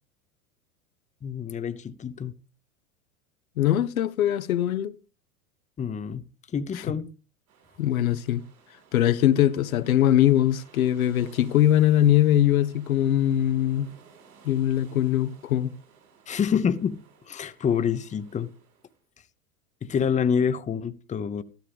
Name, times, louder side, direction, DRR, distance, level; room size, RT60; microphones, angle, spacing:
voice 1, 1.2-2.3 5.8-6.2 6.5-7.1 16.3-17.0 17.3-18.5 19.8-21.4, left 7 dB, 15° left, 0.8 m, -27 dB
voice 2, 3.6-4.9 7.8-8.4 8.9-13.9 14.4-15.7, left 12 dB, 80° left, 0.8 m, -21 dB
sound 1, 7.5-19.0, right 6 dB, 70° right, 6.5 m, -56 dB
14.0 x 13.0 x 3.4 m
hypercardioid pair, 90°, 42 cm